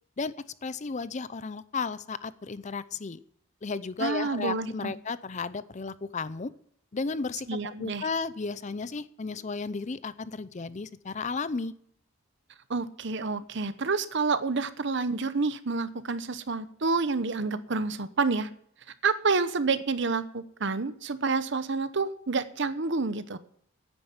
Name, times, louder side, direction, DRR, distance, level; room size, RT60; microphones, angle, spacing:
voice 1, 0.6-3.2 3.6-6.5 6.9-7.5 7.8-11.7, left 4 dB, 35° left, 16 dB, 0.5 m, -33 dB
voice 2, 4.0-4.9 7.5-8.0 12.7-18.5 19.0-23.4, right 4 dB, 60° right, 13 dB, 0.8 m, -28 dB
9.8 x 9.0 x 9.5 m, 0.66 s
head